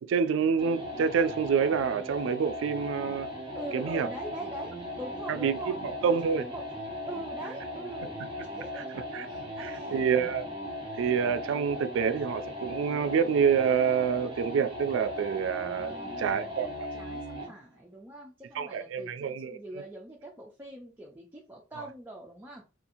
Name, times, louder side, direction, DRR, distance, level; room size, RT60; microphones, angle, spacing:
voice 1, 0.0-3.3 3.7-4.1 5.3-5.7 6.0-6.5 9.1-9.3 9.6-10.5 11.0-16.9 18.6-19.6, right 6 dB, 80° right, 0.3 m, -27 dB
sound 1, 0.6-17.6, left 1 dB, 25° right, 1.0 m, -38 dB
voice 2, 3.5-8.9 9.3-10.1 15.8-16.6 16.9-22.6, right 1 dB, 10° right, 0.4 m, -43 dB
2.8 x 2.4 x 2.6 m
head